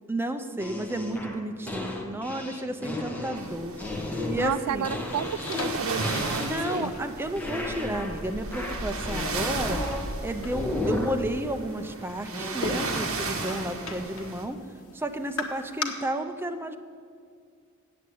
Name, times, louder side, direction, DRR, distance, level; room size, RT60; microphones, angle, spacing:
voice 1, 0.1-3.8 4.3-4.9 6.4-9.8 10.2-14.6 14.9-16.8, right 1 dB, 10° right, 7 dB, 0.5 m, -32 dB
sound 1, 0.6-7.1 7.4-8.2 8.5-10.1 10.5-11.2 12.3-12.5, left 2 dB, 5° left, 1.0 m, -34 dB
sound 2, 3.4-14.5, right 2 dB, 65° right, 1.3 m, -35 dB
sound 3, 4.4-15.8, left 3 dB, 75° left, 1.2 m, -41 dB
voice 2, 4.4-6.9, right 8 dB, 80° right, 17 dB, 0.3 m, -32 dB
8.5 x 7.7 x 8.4 m, 2.2 s
head